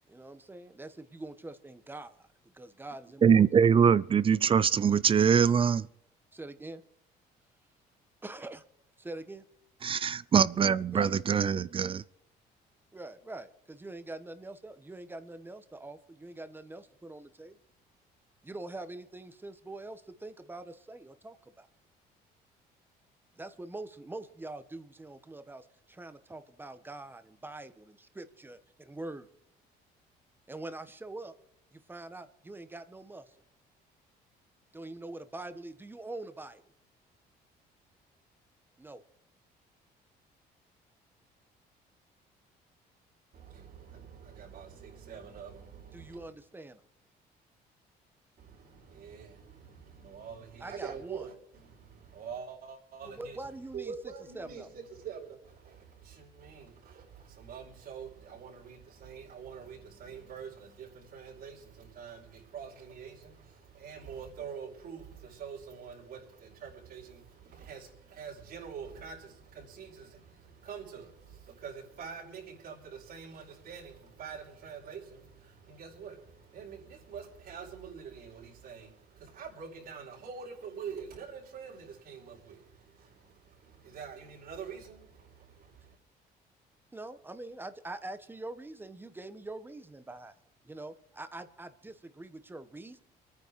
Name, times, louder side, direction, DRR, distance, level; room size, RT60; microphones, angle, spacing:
voice 1, 0.1-2.3 2.5-3.4 6.3-6.8 8.2-8.6 9.0-9.4 10.9-11.1 12.9-17.6 18.4-21.7 23.4-29.3 30.5-31.3 31.7-33.3 34.7-36.6 38.8-39.0 45.9-46.8 50.6-51.3 53.1-53.9 54.3-54.7 86.9-90.3 90.6-93.0, right 2 dB, 10° right, 1.3 m, -44 dB
voice 2, 3.2-5.9 9.8-12.0, right 7 dB, 30° right, 0.5 m, -23 dB
voice 3, 43.3-46.3 48.4-53.4 53.7-86.0, right 6 dB, 60° right, 5.0 m, -45 dB
24.5 x 9.7 x 4.8 m
cardioid pair, 110°, 17 cm